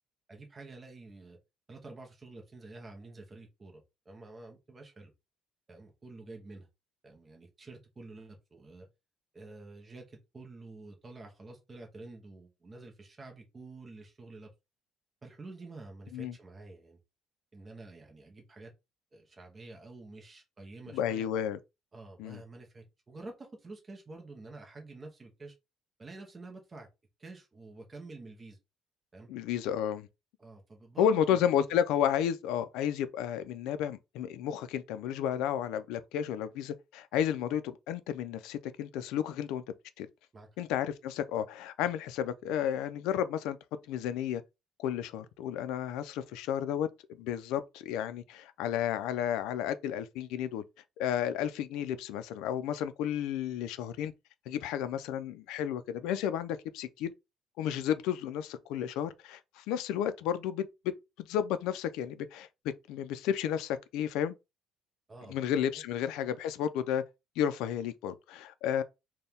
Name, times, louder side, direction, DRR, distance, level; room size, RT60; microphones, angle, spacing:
voice 1, 0.3-1.4 1.7-5.1 5.7-6.7 7.0-8.9 9.3-14.5 15.2-17.0 17.5-18.7 19.1-21.3 21.9-25.5 26.0-26.9 27.2-28.6 29.1-29.3 30.4-31.7 40.3-40.5 65.1-65.4, right 3 dB, 20° right, 0.8 m, -49 dB
voice 2, 20.9-21.6 22.2-22.4 29.3-30.1 31.0-39.6 40.0-40.1 40.6-43.6 43.9-44.4 44.8-50.6 51.0-54.1 54.5-57.1 57.6-60.9 61.2-62.5 62.9-64.4 65.3-67.0 67.4-68.8, left 9 dB, 80° left, 0.4 m, -32 dB
4.3 x 2.3 x 3.5 m
cardioid pair, 175°, 0 cm